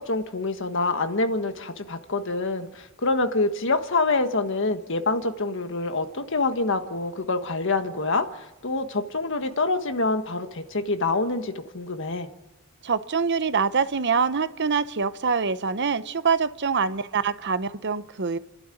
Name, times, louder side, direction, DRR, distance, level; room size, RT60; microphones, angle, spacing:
voice 1, 0.0-12.3, left 3 dB, 60° left, 1.6 m, -26 dB
voice 2, 12.8-18.4, right 5 dB, 55° right, 0.8 m, -25 dB
30.0 x 12.0 x 9.3 m
head